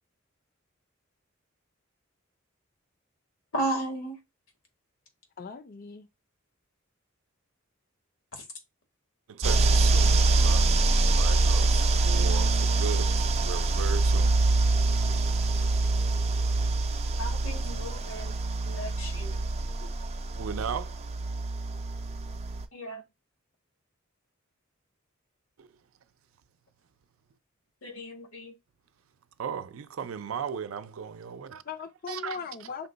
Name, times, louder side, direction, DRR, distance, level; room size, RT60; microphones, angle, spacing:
voice 1, 3.5-4.2 17.2-18.3 18.7-19.4 22.7-23.0 27.8-28.5, right 1 dB, 85° left, 1.6 m, -34 dB
voice 2, 5.4-6.1 31.6-32.9, left 5 dB, 45° left, 0.4 m, -39 dB
voice 3, 9.3-10.8 11.1-14.4 20.3-21.0 25.6-25.7 29.4-31.6 32.1-32.4, right 7 dB, 90° right, 0.4 m, -37 dB
sound 1, 9.4-22.7, right 2 dB, 30° right, 0.4 m, -25 dB
5.5 x 2.2 x 3.9 m
head